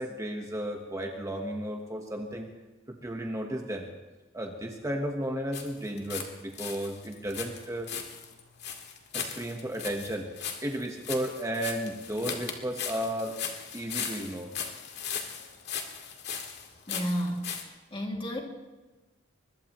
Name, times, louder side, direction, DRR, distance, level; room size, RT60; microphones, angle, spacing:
voice 1, 0.0-2.5 2.9-3.9 4.3-7.9 9.1-10.3 10.6-13.4 13.7-14.5, right 1 dB, 15° right, 2 dB, 1.2 m, -34 dB
sound 1, 5.5-6.3 6.5-17.6, left 7 dB, 55° left, 2.0 m, -38 dB
voice 2, 16.9-18.4, equal, 25° left, 0 dB, 2.5 m, -32 dB
23.0 x 20.5 x 3.1 m, 1.2 s
head